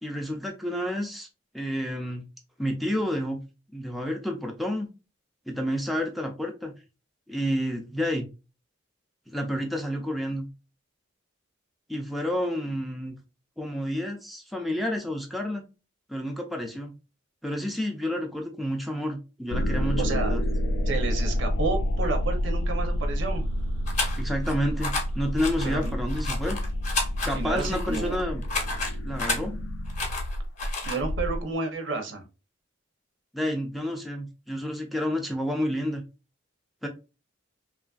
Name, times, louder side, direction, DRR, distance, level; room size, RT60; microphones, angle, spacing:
voice 1, 0.0-1.3 1.5-2.2 2.6-3.4 3.7-4.9 5.5-6.7 7.3-8.3 9.3-10.5 11.9-13.2 13.6-15.6 16.1-17.0 17.4-20.4 24.2-26.6 27.3-28.4 29.0-29.5 33.3-36.0 36.8-36.9, equal, ahead, 1 dB, 0.3 m, -30 dB
sound 1, 19.5-31.4, equal, 85° left, 0.4 m, -29 dB
voice 2, 20.0-20.4 20.9-23.5 25.6-25.9 27.3-28.2 30.8-32.2, right 3 dB, 70° right, 4 dB, 0.7 m, -31 dB
sound 2, 23.9-24.5 24.8-25.0 25.4-29.4 29.9-31.0, left 3 dB, 35° left, 0.7 m, -31 dB
2.9 x 2.4 x 2.3 m, 0.30 s
head